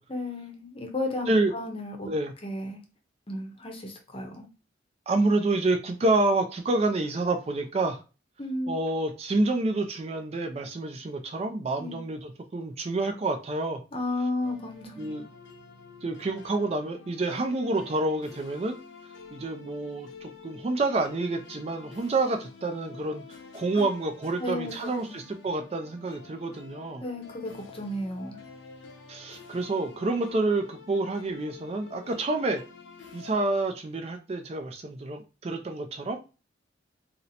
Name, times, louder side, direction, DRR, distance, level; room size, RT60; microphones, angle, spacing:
voice 1, 0.1-2.1 2.4-2.8 3.3-4.5 8.4-8.8 11.8-12.0 13.9-15.2 23.7-23.9 24.4-25.2 27.0-28.4, left 2 dB, 30° left, 3 dB, 0.7 m, -33 dB
voice 2, 5.1-8.0 8.7-13.8 15.0-15.2 16.0-18.8 19.3-27.0 29.1-32.6 33.1-36.2, right 2 dB, 30° right, 6 dB, 0.3 m, -28 dB
sound 1, 14.4-33.3, left 5 dB, 75° left, 0.7 m, -49 dB
2.8 x 2.0 x 4.0 m, 0.31 s
head